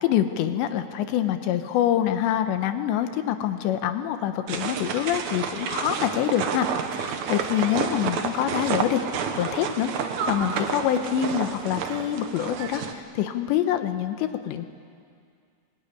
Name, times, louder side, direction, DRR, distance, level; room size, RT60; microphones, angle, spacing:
voice 1, 0.0-9.0 9.4-14.7, left 10 dB, 80° left, 9 dB, 3.1 m, -26 dB
sound 1, 4.5-12.9, right 7 dB, 70° right, 1.8 m, -30 dB
24.0 x 20.5 x 9.9 m, 2.3 s
omnidirectional pair, 5.3 m